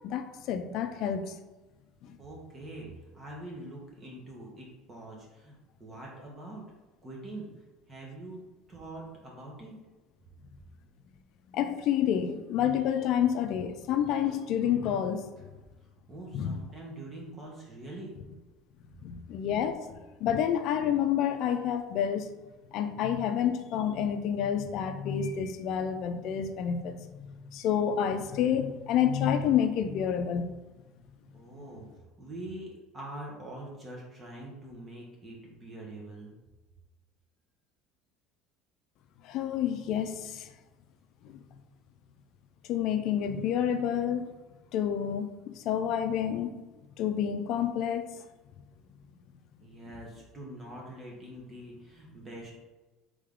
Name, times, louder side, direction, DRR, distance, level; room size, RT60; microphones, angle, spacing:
voice 1, 0.0-1.3 2.1-2.2 11.5-15.3 16.3-16.5 19.0-22.3 22.7-27.0 27.3-30.5 39.2-40.5 41.2-41.4 42.7-44.2 44.7-46.7 47.0-48.2, left 9 dB, 55° left, 8 dB, 0.3 m, -29 dB
voice 2, 2.2-2.9 3.1-6.6 7.0-7.5 7.9-8.4 8.7-9.7 15.4-15.5 16.1-18.1 31.3-36.3 49.6-52.6, right 1 dB, 25° right, -3 dB, 0.9 m, -44 dB
3.5 x 3.2 x 3.6 m, 1.2 s
cardioid pair, 130°, 0 cm